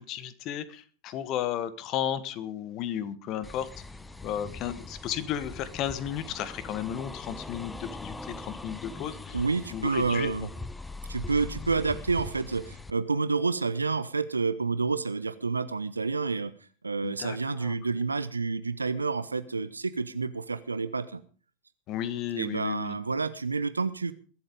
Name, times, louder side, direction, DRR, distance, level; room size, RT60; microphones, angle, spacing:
voice 1, 0.0-3.7 4.2-9.4 9.7-10.3 17.0-17.7 21.9-23.0, left 10 dB, 35° left, 17 dB, 1.3 m, -34 dB
sound 1, 3.4-12.9, left 3 dB, 10° left, 0.8 m, -41 dB
voice 2, 9.3-10.5 11.1-16.5 16.8-21.2 22.4-24.1, right 4 dB, 80° right, 14 dB, 0.7 m, -29 dB
22.0 x 8.1 x 5.1 m, 0.39 s
figure-of-eight pair, 90°, 0 cm